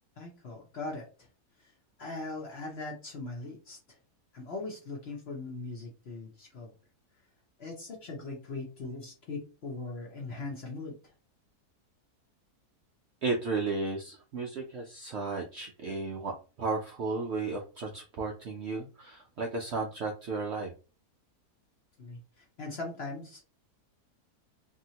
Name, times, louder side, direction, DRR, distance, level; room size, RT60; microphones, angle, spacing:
voice 1, 0.2-1.3 1.6-1.7 2.0-3.8 4.3-6.7 7.6-11.1 22.0-23.5, left 3 dB, 50° left, 0 dB, 0.8 m, -40 dB
voice 2, 13.2-20.7, right 3 dB, 65° right, 1 dB, 0.6 m, -34 dB
2.9 x 2.7 x 2.8 m, 0.33 s
omnidirectional pair, 1.7 m